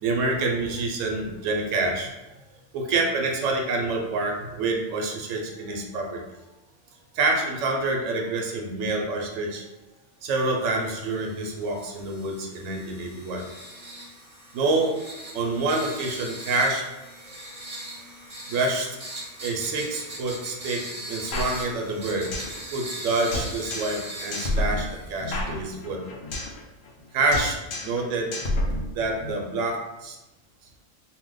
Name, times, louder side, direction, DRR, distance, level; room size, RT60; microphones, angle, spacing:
voice 1, 0.0-2.1 2.7-6.2 7.1-9.6 10.2-13.4 14.5-15.0 15.3-17.0 18.5-18.9 19.4-22.3 22.7-26.0 27.1-27.6 27.8-28.3 28.9-30.2, right 3 dB, 90° right, 1 dB, 1.0 m, -27 dB
sound 1, 10.5-25.4, right 1 dB, 35° right, 0.6 m, -40 dB
sound 2, 21.3-22.6 22.9-23.0 23.3-24.0 24.3-26.6 26.8-27.1 27.3-28.0 28.3-29.3, left 1 dB, 85° left, 1.0 m, -30 dB
2.7 x 2.1 x 3.7 m, 1.0 s
omnidirectional pair, 1.3 m